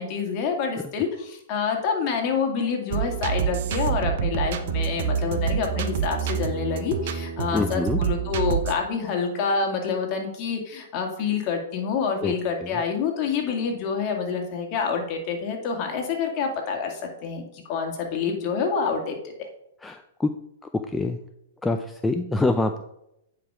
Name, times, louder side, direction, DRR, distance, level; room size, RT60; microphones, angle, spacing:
voice 1, 0.0-19.2, left 5 dB, 40° left, 2 dB, 2.1 m, -27 dB
sound 1, 2.9-8.7, right 8 dB, 60° right, 0.8 m, -27 dB
voice 2, 7.5-8.0 12.2-12.3 12.6-12.7 19.8-20.3 20.9-21.2 21.6-22.8, left 2 dB, 10° left, 6 dB, 0.5 m, -25 dB
9.1 x 5.1 x 4.9 m, 0.79 s
hypercardioid pair, 125°, 0 cm